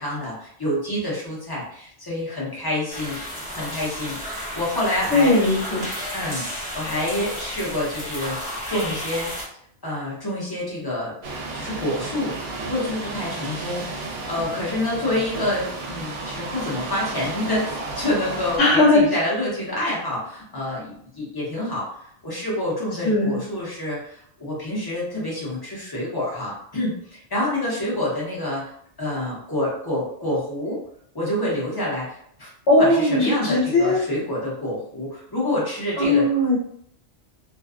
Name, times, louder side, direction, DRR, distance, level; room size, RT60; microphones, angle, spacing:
voice 1, 0.0-3.2 3.5-4.2 4.5-5.5 6.1-6.5 6.7-9.3 9.8-11.1 11.5-12.3 12.6-14.0 14.2-28.7 29.0-30.8 31.1-32.5 32.8-36.3, left 1 dB, 20° left, -5 dB, 0.8 m, -27 dB
sound 1, 2.9-9.5, equal, 5° right, 0.9 m, -32 dB
voice 2, 5.1-5.9 18.6-19.1 19.8-19.9 23.0-23.4 32.7-34.0 36.0-36.6, left 2 dB, 70° left, -5 dB, 1.0 m, -18 dB
sound 2, 11.2-18.6, right 3 dB, 85° right, 0.9 m, -33 dB
2.5 x 2.2 x 2.4 m, 0.67 s
omnidirectional pair, 1.2 m